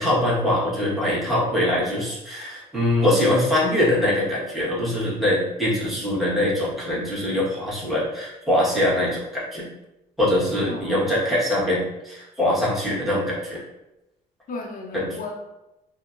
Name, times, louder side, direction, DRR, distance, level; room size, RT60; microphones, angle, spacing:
voice 1, 0.0-9.7 10.2-13.6 14.9-15.1, left 1 dB, ahead, -7 dB, 1.3 m, -23 dB
voice 2, 10.7-11.1 14.5-15.3, left 3 dB, 50° left, 1 dB, 0.7 m, -35 dB
3.5 x 2.1 x 2.5 m, 0.94 s
supercardioid pair, 70°, 18 cm